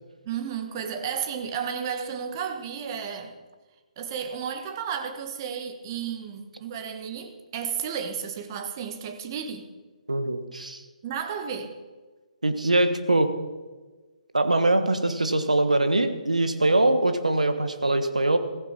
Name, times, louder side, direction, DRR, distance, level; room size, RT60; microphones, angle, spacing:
voice 1, 0.2-3.4 4.0-9.7 11.0-11.8, right 7 dB, 35° right, 7 dB, 1.4 m, -33 dB
voice 2, 10.1-10.8 12.4-13.3 14.3-18.4, right 2 dB, 80° right, 9 dB, 1.5 m, -22 dB
15.5 x 15.5 x 4.5 m, 1.3 s
figure-of-eight pair, 135°, 4 cm